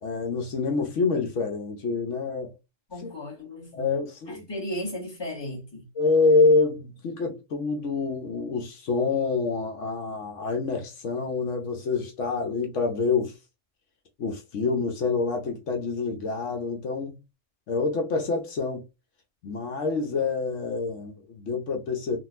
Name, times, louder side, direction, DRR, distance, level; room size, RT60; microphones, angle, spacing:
voice 1, 0.0-2.6 3.0-3.1 3.8-4.5 6.0-13.3 14.2-17.2 17.7-18.8 19.4-22.2, left 4 dB, 75° left, 1.1 m, -26 dB
voice 2, 2.9-4.0 4.3-5.8, left 1 dB, 20° left, 1.4 m, -35 dB
3.8 x 2.4 x 2.5 m
omnidirectional pair, 1.3 m